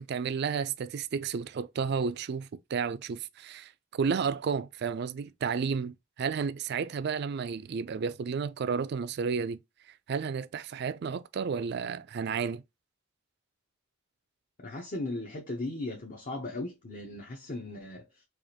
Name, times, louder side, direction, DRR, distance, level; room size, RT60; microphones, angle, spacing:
voice 1, 0.0-9.6 10.1-12.6, right 6 dB, 55° right, 0.3 m, -32 dB
voice 2, 14.6-18.2, left 2 dB, 45° left, 0.8 m, -37 dB
4.8 x 2.5 x 2.8 m
head